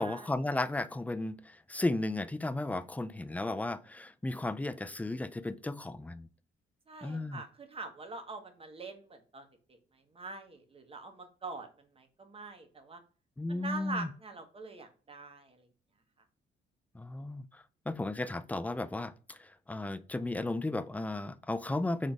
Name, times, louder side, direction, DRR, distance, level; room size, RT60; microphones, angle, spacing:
voice 1, 0.0-1.4 1.7-6.3 7.0-7.4 13.4-14.1 16.9-17.4 17.9-19.4 19.7-22.1, left 2 dB, 10° left, 0.3 m, -34 dB
voice 2, 6.9-9.4 10.1-11.7 12.0-13.0 13.5-15.6, right 3 dB, 30° right, 1.1 m, -44 dB
4.0 x 3.3 x 3.5 m
cardioid pair, 90°, 20 cm